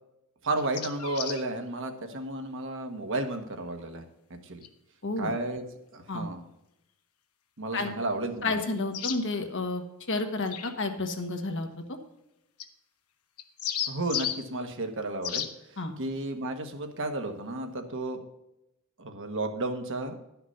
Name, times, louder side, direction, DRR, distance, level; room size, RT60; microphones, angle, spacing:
voice 1, 0.4-4.0 4.5-4.6 5.2-5.6 5.9-6.4 7.6-8.6 13.9-15.5 16.0-18.2 19.0-20.2, right 2 dB, 60° right, 5 dB, 1.4 m, -32 dB
sound 1, 0.6-1.4 4.6-4.7 8.9-9.2 10.5-10.7 12.6-12.7 13.4-14.4 15.2-15.5, left 9 dB, 85° left, 1.0 m, -33 dB
voice 2, 5.0-5.3 6.1-6.3 7.7-7.9 8.4-9.8 10.1-12.0 15.8-15.9, left 3 dB, 60° left, 5 dB, 1.4 m, -31 dB
11.5 x 5.9 x 5.6 m, 0.87 s
head